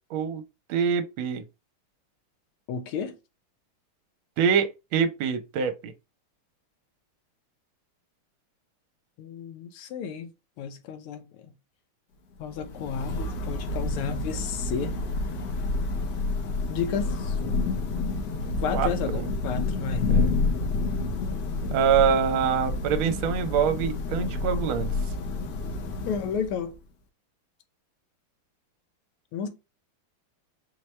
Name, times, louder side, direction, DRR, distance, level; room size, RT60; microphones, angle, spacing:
voice 1, 0.1-0.4 0.7-1.4 4.4-5.9 18.7-19.3 20.1-20.3 21.7-24.9, right 7 dB, 75° right, 1.5 m, -25 dB
voice 2, 2.7-3.2 9.2-10.3 10.6-11.5 12.4-15.0 16.7-17.4 18.6-20.2 26.1-26.8 29.3-29.5, left 7 dB, 90° left, 1.7 m, -32 dB
Thunder / Rain, 12.4-26.8, left 3 dB, 65° left, 1.2 m, -29 dB
4.7 x 2.2 x 4.2 m
omnidirectional pair, 2.4 m